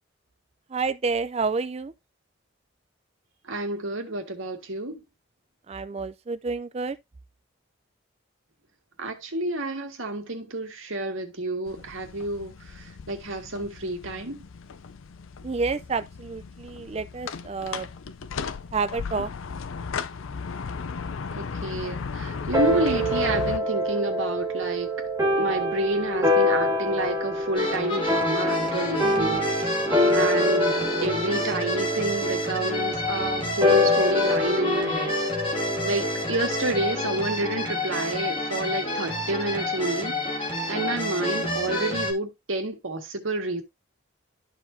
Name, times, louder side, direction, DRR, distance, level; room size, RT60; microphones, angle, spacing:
voice 1, 0.7-1.9 5.7-7.0 15.4-17.9 18.7-19.3 29.0-29.4, right 4 dB, 30° right, 0.4 m, -29 dB
voice 2, 3.5-5.0 9.0-14.4 21.4-25.1 25.4-29.8 30.1-35.1 35.8-40.2 40.4-43.6, right 2 dB, 85° right, 1.8 m, -29 dB
sound 1, 11.7-23.6, left 5 dB, 85° left, 0.5 m, -36 dB
sound 2, 22.5-37.3, left 1 dB, 15° right, 2.1 m, -26 dB
sound 3, 27.5-42.1, left 1 dB, 25° left, 2.0 m, -29 dB
12.5 x 4.4 x 2.7 m
head